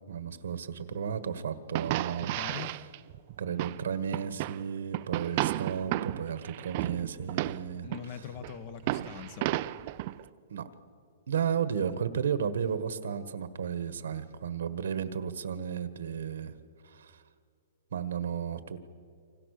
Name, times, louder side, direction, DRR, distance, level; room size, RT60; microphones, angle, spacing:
voice 1, 0.1-2.4 3.4-7.9 8.8-9.2 10.5-10.7 11.3-16.5 16.8-17.2 17.9-18.8, right 7 dB, 80° right, 12 dB, 1.6 m, -33 dB
sound 1, 1.7-3.8 4.1-4.6 4.9-8.0 8.4-10.2, right 16 dB, 40° right, 0.6 m, -33 dB
voice 2, 2.2-2.8 7.8-9.5, left 8 dB, 35° left, 12 dB, 1.4 m, -42 dB
28.0 x 25.5 x 6.8 m, 2.3 s
hypercardioid pair, 160°, 0 cm